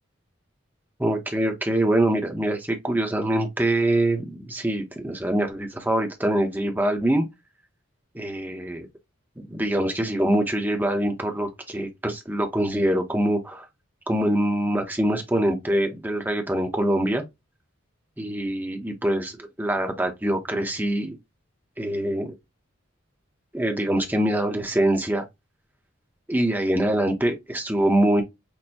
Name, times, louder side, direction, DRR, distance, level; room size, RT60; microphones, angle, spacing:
voice 1, 1.0-7.3 8.1-8.9 9.4-13.6 14.1-17.2 18.2-21.2 21.8-22.3 23.5-25.3 26.3-28.2, right 1 dB, 10° right, 0.8 m, -24 dB
6.1 x 2.2 x 2.7 m
head